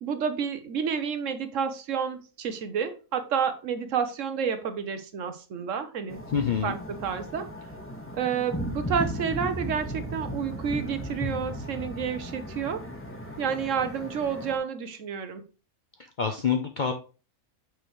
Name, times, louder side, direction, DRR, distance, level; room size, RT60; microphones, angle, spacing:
voice 1, 0.0-6.2 6.6-7.5 8.1-12.8 13.4-15.4, right 7 dB, 65° right, 9 dB, 1.1 m, -30 dB
sound 1, 6.1-14.6, equal, 10° left, 1.2 m, -36 dB
voice 2, 6.3-6.7 16.2-16.9, left 6 dB, 55° left, 5 dB, 0.5 m, -26 dB
6.3 x 5.1 x 3.1 m, 0.33 s
omnidirectional pair, 1.5 m